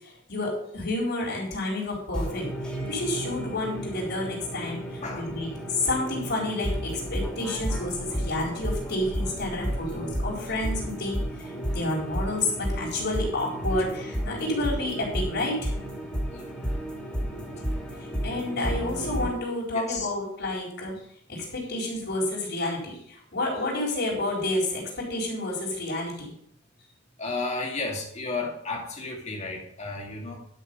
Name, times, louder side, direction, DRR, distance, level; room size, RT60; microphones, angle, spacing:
voice 1, 0.3-2.5 2.9-4.8 5.1-11.2 11.7-15.7 18.2-21.0 21.3-26.3, left 2 dB, 60° left, -3 dB, 4.3 m, -30 dB
sound 1, 2.1-19.3, equal, 5° left, 3.0 m, -32 dB
voice 2, 17.0-17.4 19.7-20.1 27.2-30.5, left 3 dB, 35° left, 0 dB, 2.5 m, -34 dB
11.0 x 6.5 x 5.4 m, 0.70 s
head